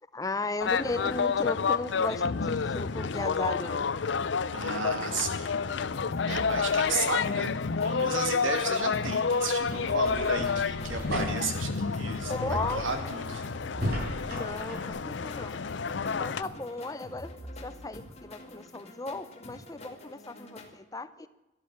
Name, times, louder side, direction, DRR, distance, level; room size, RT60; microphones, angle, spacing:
voice 1, 0.1-3.9 12.3-12.8 14.3-15.6 16.0-17.3 17.6-21.3, left 2 dB, 20° left, 13 dB, 0.6 m, -35 dB
sound 1, 0.6-16.4, left 5 dB, 65° left, 0.6 m, -30 dB
voice 2, 4.5-5.5 6.3-7.5 7.8-13.5 16.5-16.6, right 3 dB, 85° right, 6 dB, 2.5 m, -34 dB
sound 2, 5.9-20.7, left 1 dB, 35° left, 2.3 m, -46 dB
sound 3, 8.3-14.9, equal, 55° right, 7.0 m, -38 dB
13.0 x 12.0 x 8.5 m, 1.0 s
head